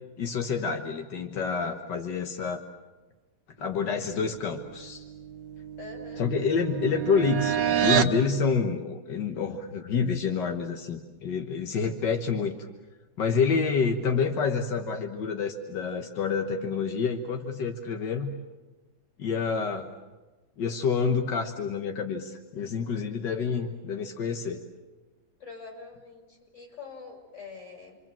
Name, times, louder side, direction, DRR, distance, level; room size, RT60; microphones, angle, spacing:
voice 1, 0.2-2.6 3.6-5.0 6.2-12.7 13.2-18.3 19.2-19.9 20.6-24.6, left 5 dB, 85° left, 4 dB, 1.9 m, -28 dB
sound 1, 5.0-8.2, right 9 dB, 85° right, 1.9 m, -28 dB
voice 2, 5.8-6.3 25.4-28.0, left 4 dB, 40° left, 1 dB, 6.0 m, -44 dB
28.5 x 24.5 x 7.4 m, 1.2 s
omnidirectional pair, 1.8 m